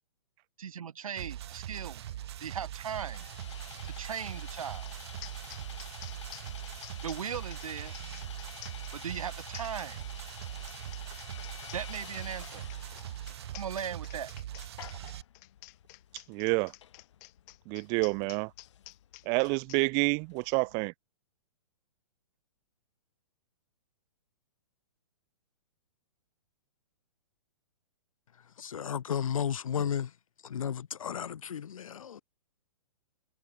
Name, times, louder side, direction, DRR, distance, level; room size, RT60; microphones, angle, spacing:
voice 1, 0.6-2.0 2.4-3.3 3.8-4.9 7.0-7.9 8.9-10.0 11.7-12.6 13.5-14.3, right 8 dB, 90° right, 1.2 m, -38 dB
sound 1, 1.2-15.2, right 12 dB, 50° right, 4.5 m, -41 dB
Sawing, 1.4-20.8, left 10 dB, 60° left, 7.8 m, -51 dB
sound 2, 4.9-5.0 5.2-19.8, left 31 dB, 30° left, 4.1 m, -51 dB
voice 2, 16.3-16.7 17.7-18.5 19.3-20.9, right 36 dB, 25° right, 0.6 m, -28 dB
voice 3, 28.6-30.1 30.4-32.2, left 8 dB, 80° left, 2.2 m, -33 dB
hypercardioid pair, 160°, 17 cm